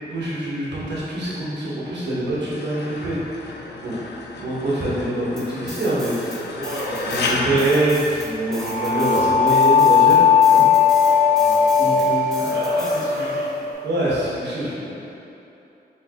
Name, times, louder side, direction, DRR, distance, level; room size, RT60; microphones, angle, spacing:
voice 1, 0.0-3.5 3.8-3.9 4.4-6.3 7.0-10.7 11.8-12.5 13.8-15.0, right 1 dB, 85° right, -8 dB, 1.2 m, -25 dB
sound 1, 2.5-8.8, left 3 dB, 80° left, 0.4 m, -32 dB
sound 2, 5.4-6.4 6.6-13.5, equal, 5° left, 0.8 m, -38 dB
voice 2, 6.5-7.8 8.3-8.6 10.9-12.1 12.4-13.5, equal, 65° right, -10 dB, 1.0 m, -34 dB
sound 3, 8.6-13.7, left 6 dB, 50° left, 0.9 m, -17 dB
4.4 x 3.3 x 2.9 m, 2.9 s
cardioid pair, 85°, 17 cm